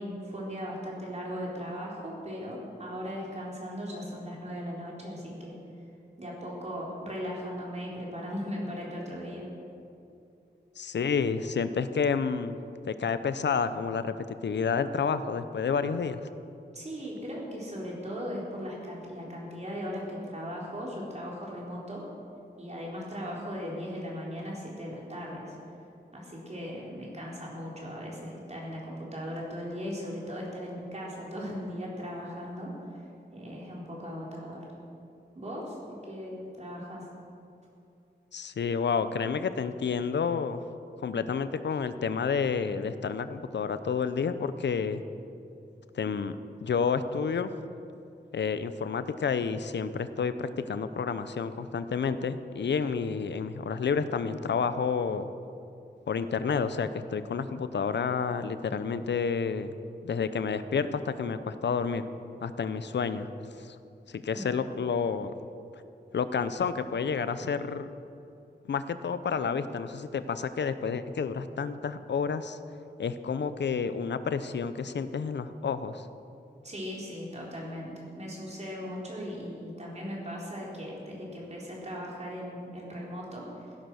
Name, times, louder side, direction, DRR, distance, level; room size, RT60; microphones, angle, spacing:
voice 1, 0.0-5.6 6.2-9.5 16.7-22.0 22.6-25.6 26.1-33.0 33.3-34.7 35.3-37.1 64.3-64.5 76.6-83.7, equal, 40° right, -4 dB, 4.2 m, -38 dB
voice 2, 10.8-12.6 12.9-14.2 14.4-16.2 38.3-40.6 41.0-45.0 45.9-46.4 46.6-47.5 48.3-55.3 56.1-59.7 60.0-62.0 62.4-63.3 63.6-63.8 64.1-65.3 66.1-67.9 68.7-72.6 73.0-76.1, left 6 dB, 85° left, 12 dB, 0.7 m, -30 dB
16.0 x 10.5 x 6.4 m, 2.6 s
wide cardioid pair, 90°, 18 cm